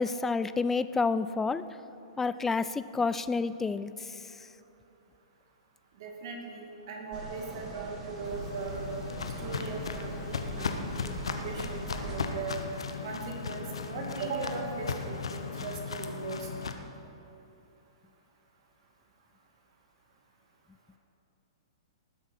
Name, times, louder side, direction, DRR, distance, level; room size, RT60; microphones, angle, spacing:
voice 1, 0.0-1.6 2.2-3.9, left 4 dB, 10° left, 14 dB, 0.4 m, -29 dB
voice 2, 6.0-8.9 9.4-11.0 11.2-12.6 13.0-16.5, right 4 dB, 55° right, 1 dB, 2.5 m, -38 dB
sound 1, 7.1-12.1, right 3 dB, 25° right, 2.5 m, -42 dB
Walk footsteps, 8.2-16.7, left 5 dB, 75° left, 1.0 m, -36 dB
19.0 x 7.9 x 5.5 m, 2.9 s
hypercardioid pair, 115°, 3 cm